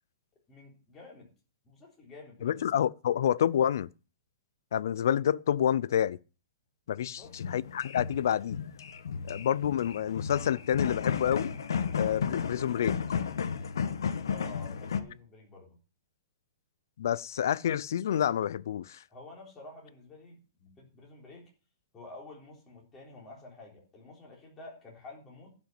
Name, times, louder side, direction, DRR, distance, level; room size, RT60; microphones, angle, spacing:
voice 1, 0.5-1.3 1.6-2.6 6.9-7.3 14.3-15.8 19.1-21.5 21.9-25.6, left 2 dB, 10° left, 3.8 m, -50 dB
voice 2, 2.4-3.9 4.7-6.2 6.9-8.6 9.3-11.6 11.9-13.0 17.0-19.0, left 9 dB, 55° left, 0.5 m, -28 dB
sound 1, 7.2-15.0, left 6 dB, 90° left, 1.5 m, -33 dB
11.5 x 6.0 x 9.0 m
hypercardioid pair, 175°, 2 cm